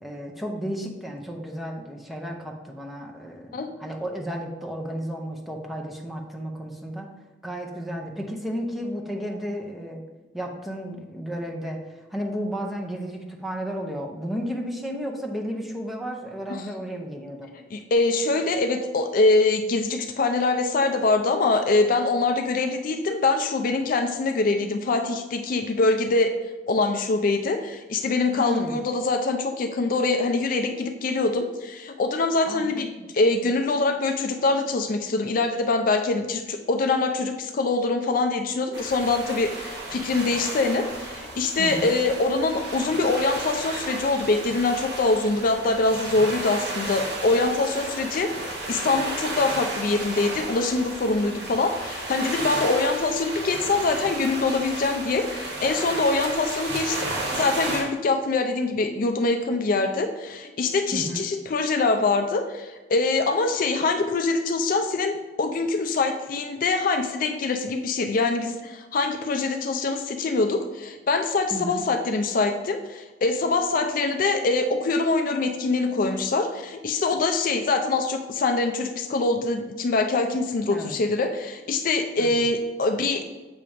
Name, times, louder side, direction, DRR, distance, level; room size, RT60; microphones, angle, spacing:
voice 1, 0.0-7.1 7.4-10.0 10.3-17.5 28.4-28.8 32.5-32.7 33.0-33.1 41.6-41.9 60.9-61.3 71.5-71.8 80.7-81.0 82.2-82.5, equal, ahead, 0 dB, 0.7 m, -33 dB
voice 2, 17.7-26.3 26.7-83.2, left 3 dB, 50° left, 6 dB, 0.4 m, -24 dB
sound 1, 38.7-57.8, right 2 dB, 65° right, 1.3 m, -33 dB
7.0 x 2.9 x 4.9 m, 1.2 s
head